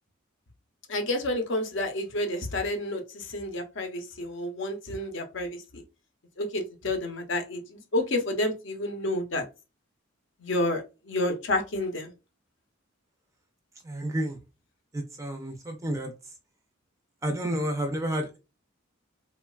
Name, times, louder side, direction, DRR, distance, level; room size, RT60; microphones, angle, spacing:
voice 1, 0.9-5.8 6.4-9.4 10.4-12.1, left 1 dB, 60° left, 5 dB, 0.6 m, -30 dB
voice 2, 13.8-14.4 14.9-16.1 17.2-18.4, right 1 dB, 15° right, 4 dB, 0.3 m, -30 dB
3.0 x 2.2 x 2.3 m, 0.29 s
head